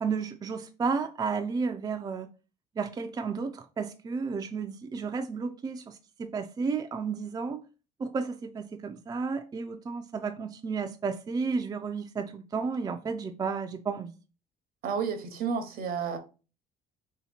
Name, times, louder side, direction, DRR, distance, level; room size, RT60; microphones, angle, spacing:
voice 1, 0.0-2.3 2.8-7.6 8.0-14.1, right 5 dB, 25° right, 0.4 m, -32 dB
voice 2, 14.8-16.2, right 6 dB, 65° right, 0.8 m, -31 dB
2.8 x 2.8 x 4.2 m
cardioid pair, 110°, 17 cm